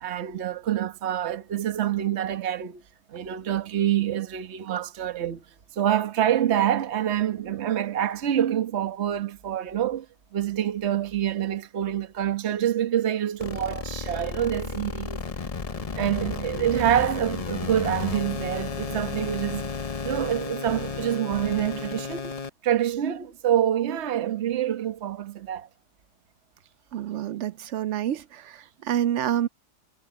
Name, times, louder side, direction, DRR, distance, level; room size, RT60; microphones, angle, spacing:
voice 1, 0.0-2.8 3.1-5.4 5.7-10.1 10.3-15.3 15.9-19.7 20.0-22.3 22.6-25.7, right 11 dB, 45° right, 1.3 m, -26 dB
sound 1, 13.4-22.5, left 5 dB, 40° left, 0.5 m, -33 dB
voice 2, 26.9-29.5, right 11 dB, 70° right, 0.7 m, -28 dB
omnidirectional pair, 1.7 m